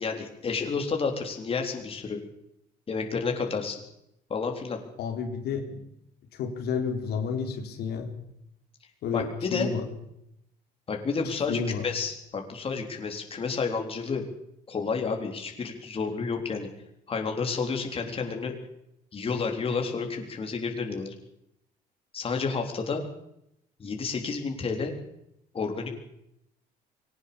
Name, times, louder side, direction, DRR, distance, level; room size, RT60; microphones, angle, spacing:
voice 1, 0.0-2.2 2.9-3.8 4.3-4.8 9.1-9.7 10.9-14.2 14.7-16.7 17.1-18.5 19.1-21.1 22.1-23.0 23.8-24.9 25.5-25.9, left 5 dB, 35° left, 3 dB, 3.9 m, -30 dB
voice 2, 5.0-5.8 6.3-8.1 9.0-9.8 11.5-11.8, left 6 dB, 75° left, 4 dB, 4.0 m, -30 dB
21.5 x 18.5 x 7.0 m, 0.78 s
cardioid pair, 110°, 17 cm